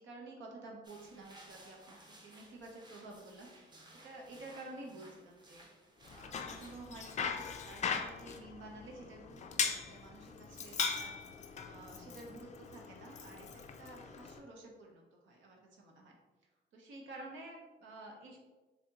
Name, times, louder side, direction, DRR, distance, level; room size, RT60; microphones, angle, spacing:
voice 1, 0.0-3.8 4.0-5.7 6.1-11.2 11.7-16.2 16.7-18.4, right 2 dB, 75° right, 0 dB, 0.8 m, -51 dB
sound 1, 0.8-7.2, right 1 dB, 20° right, 0.7 m, -59 dB
Bicycle, 6.0-14.4, left 6 dB, 35° left, 0.4 m, -40 dB
4.1 x 2.7 x 2.8 m, 1.2 s
cardioid pair, 90°, 20 cm